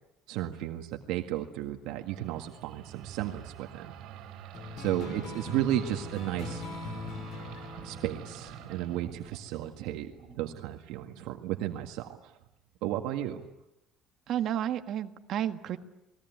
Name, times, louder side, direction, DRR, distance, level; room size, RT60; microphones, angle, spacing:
voice 1, 0.3-3.9 4.8-6.6 7.8-12.3 12.8-13.4, right 13 dB, 80° right, 4 dB, 1.8 m, -34 dB
sound 1, 2.0-11.3, right 10 dB, 60° right, 5.0 m, -47 dB
sound 2, 4.5-9.5, left 3 dB, 55° left, 5.4 m, -41 dB
voice 2, 14.3-15.8, right 10 dB, 45° right, 7 dB, 1.7 m, -31 dB
29.5 x 20.5 x 9.5 m, 0.88 s
cardioid pair, 170°, 0 cm